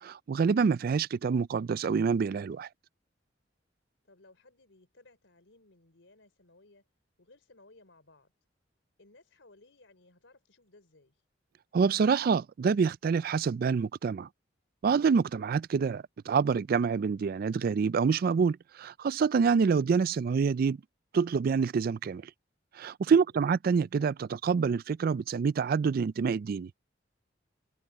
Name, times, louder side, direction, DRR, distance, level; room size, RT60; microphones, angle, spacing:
voice 1, 0.0-2.7 11.7-14.3 14.8-20.8 21.1-22.2 22.8-26.7, right 5 dB, 50° right, 0.3 m, -27 dB
voice 2, 4.0-6.9 7.2-8.3 9.0-11.2 23.1-23.4, left 2 dB, 85° left, 3.6 m, -60 dB
head